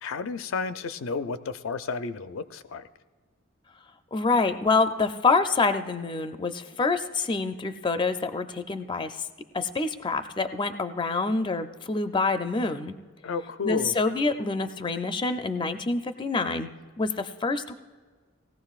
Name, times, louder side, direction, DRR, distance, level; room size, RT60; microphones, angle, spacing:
voice 1, 0.0-2.9 13.2-13.9, left 4 dB, 80° left, 10 dB, 0.5 m, -32 dB
voice 2, 4.1-9.2 9.5-13.0 13.6-16.7 17.0-17.7, left 3 dB, 25° left, 8 dB, 0.4 m, -26 dB
19.0 x 15.0 x 2.4 m, 1.5 s
head